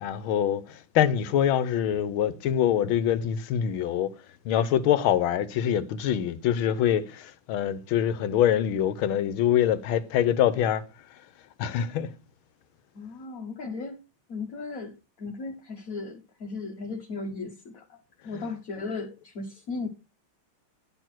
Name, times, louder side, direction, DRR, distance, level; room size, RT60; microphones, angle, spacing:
voice 1, 0.0-4.1 4.4-10.8 11.6-12.1, left 10 dB, 75° left, 1.6 m, -24 dB
voice 2, 12.9-14.0 14.3-19.9, left 3 dB, 50° left, 1.3 m, -36 dB
11.0 x 4.6 x 6.0 m
omnidirectional pair, 2.4 m